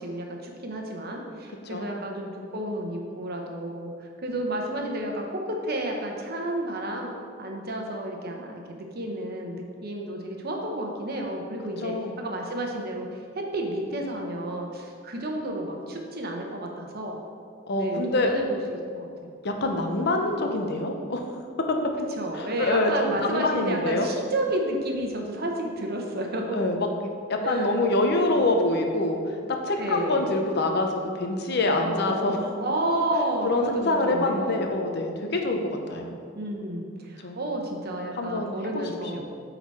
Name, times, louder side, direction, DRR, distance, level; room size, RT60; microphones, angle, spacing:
voice 1, 0.0-7.1 7.4-17.2 17.8-19.3 19.8-20.0 22.2-26.7 27.4-27.8 29.8-30.4 31.7-34.6 36.1-39.2, right 1 dB, 50° right, 1 dB, 1.0 m, -31 dB
voice 2, 11.8-12.2 17.7-18.3 19.4-21.3 21.7-21.8 22.3-24.1 26.5-26.9 27.3-29.4 29.6-32.4 33.4-36.1 37.2-37.4 38.2-38.9 39.1-39.2, left 2 dB, 55° left, 3 dB, 0.8 m, -25 dB
8.5 x 4.0 x 4.7 m, 2.2 s
head